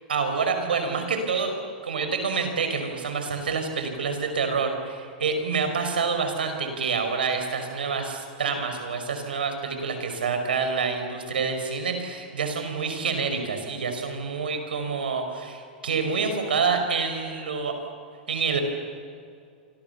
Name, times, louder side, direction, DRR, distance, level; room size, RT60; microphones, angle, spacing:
voice 1, 0.1-1.6 1.8-17.8 18.3-18.6, right 5 dB, 85° right, 6 dB, 5.5 m, -27 dB
30.0 x 25.0 x 7.0 m, 2.4 s
hypercardioid pair, 115°, 5 cm